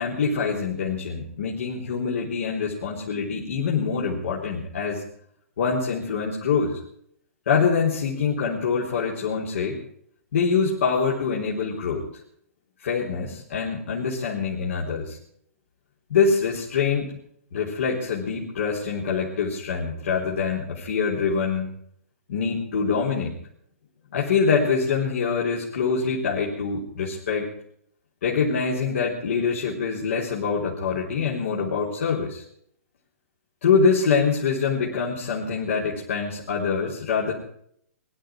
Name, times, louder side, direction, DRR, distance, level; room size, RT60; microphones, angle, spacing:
voice 1, 0.0-5.0 5.6-6.8 7.5-9.8 10.3-12.0 12.8-15.2 16.1-17.1 17.5-21.7 22.3-23.3 24.1-27.5 28.2-32.4 33.6-37.3, left 5 dB, 60° left, -4 dB, 4.0 m, -24 dB
22.5 x 12.0 x 4.7 m, 0.68 s
figure-of-eight pair, 120°, 8 cm